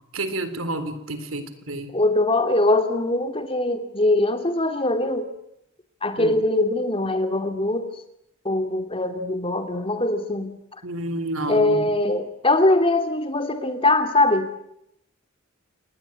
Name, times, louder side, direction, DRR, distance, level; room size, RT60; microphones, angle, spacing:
voice 1, 0.1-1.9 6.2-6.3 10.8-11.9, right 2 dB, 85° right, 11 dB, 3.9 m, -29 dB
voice 2, 1.9-5.3 6.0-7.9 8.4-10.5 11.5-14.5, left 2 dB, 25° left, 8 dB, 2.8 m, -22 dB
28.5 x 21.0 x 9.4 m, 0.77 s
head